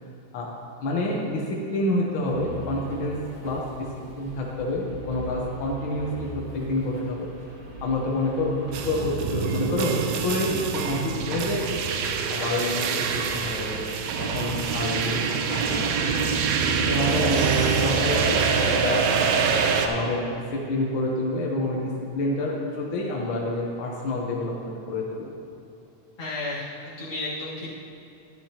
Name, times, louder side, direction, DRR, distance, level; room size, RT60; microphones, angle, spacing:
voice 1, 0.8-3.2 3.4-3.9 4.1-7.3 7.8-11.7 12.3-13.9 14.2-16.4 16.9-19.1 19.8-25.4, left 1 dB, 75° left, -2 dB, 1.1 m, -28 dB
sound 1, 2.2-17.4, equal, 40° right, 1.5 m, -42 dB
sound 2, 8.7-19.9, right 5 dB, 80° right, 1.5 m, -25 dB
voice 2, 26.2-27.7, left 2 dB, 30° left, -10 dB, 3.0 m, -33 dB
12.5 x 12.0 x 2.9 m, 2.9 s
omnidirectional pair, 4.0 m